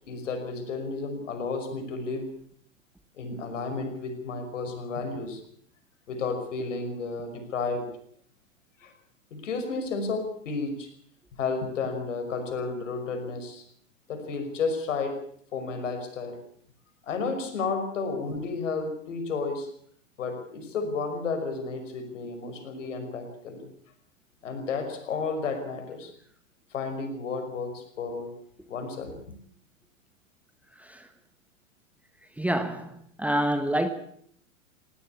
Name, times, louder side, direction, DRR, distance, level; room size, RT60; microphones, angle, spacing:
voice 1, 0.0-2.3 3.2-5.4 6.1-7.9 8.8-8.9 9.3-10.9 11.4-13.6 14.1-15.2 15.5-16.4 17.1-19.7 20.2-23.7 24.4-26.1 26.7-28.3 28.7-29.2, left 4 dB, 65° left, 5.7 m, -32 dB
voice 2, 32.4-33.9, right 1 dB, 5° right, 1.3 m, -27 dB
20.0 x 17.0 x 8.4 m
figure-of-eight pair, 105°, 40 cm